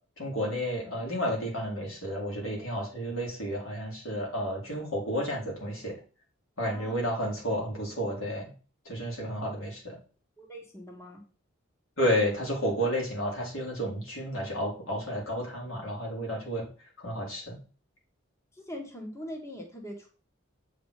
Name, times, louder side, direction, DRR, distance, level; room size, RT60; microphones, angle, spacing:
voice 1, 0.2-5.9 6.6-8.5 8.8-10.0 12.0-16.7 17.0-17.6, equal, 90° left, -2 dB, 4.1 m, -31 dB
voice 2, 10.4-11.2 18.5-20.1, equal, 15° left, 1 dB, 1.5 m, -42 dB
8.0 x 5.0 x 4.9 m, 0.38 s
head